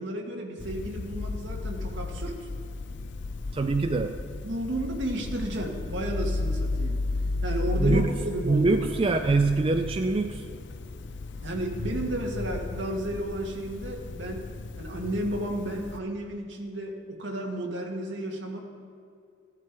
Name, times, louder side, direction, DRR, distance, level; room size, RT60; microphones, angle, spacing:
voice 1, 0.0-2.5 4.4-7.0 7.4-8.8 11.4-14.5 14.8-18.6, right 1 dB, 65° right, 1 dB, 1.7 m, -32 dB
sound 1, 0.6-16.0, left 3 dB, 65° left, 0.5 m, -34 dB
voice 2, 3.5-4.2 7.8-10.5, right 3 dB, 30° right, 6 dB, 0.4 m, -25 dB
15.0 x 10.5 x 4.6 m, 2.4 s
head